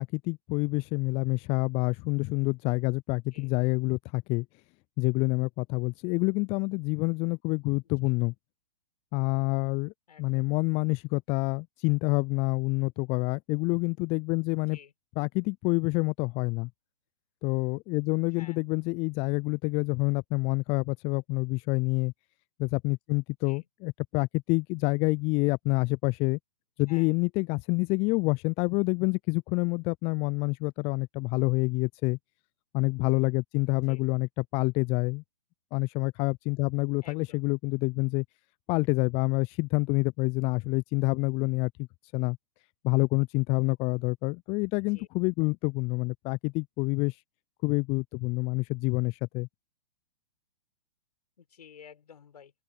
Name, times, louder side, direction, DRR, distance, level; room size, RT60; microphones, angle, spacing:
voice 1, 0.0-4.5 5.0-8.3 9.1-9.9 10.2-14.8 15.2-16.7 17.4-22.1 22.6-26.4 26.8-32.2 32.7-35.2 35.7-38.2 38.7-41.7 42.1-42.4 42.8-47.2 47.6-49.5, left 26 dB, 30° left, 0.6 m, -27 dB
voice 2, 10.1-10.5 14.7-14.9 18.4-18.7 23.5-23.7 26.9-27.1 33.9-34.0 37.0-37.5 44.7-45.1 51.4-52.5, left 8 dB, 70° left, 6.9 m, -52 dB
open air
figure-of-eight pair, 110°, 21 cm